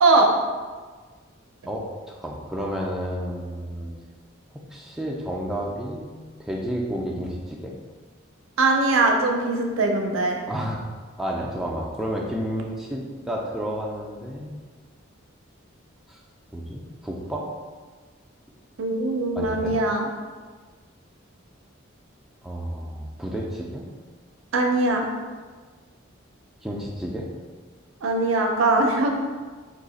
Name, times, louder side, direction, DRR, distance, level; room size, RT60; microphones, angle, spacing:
voice 1, 1.7-3.9 4.5-7.7 10.5-10.8 11.2-14.6 16.1-16.2 16.5-17.5 19.3-19.8 22.4-23.8 26.6-27.3, equal, ahead, -3 dB, 0.3 m, -31 dB
voice 2, 8.6-10.4 18.8-20.0 24.5-25.1 28.0-29.1, right 2 dB, 75° right, 2 dB, 0.5 m, -21 dB
2.8 x 2.4 x 4.0 m, 1.4 s
head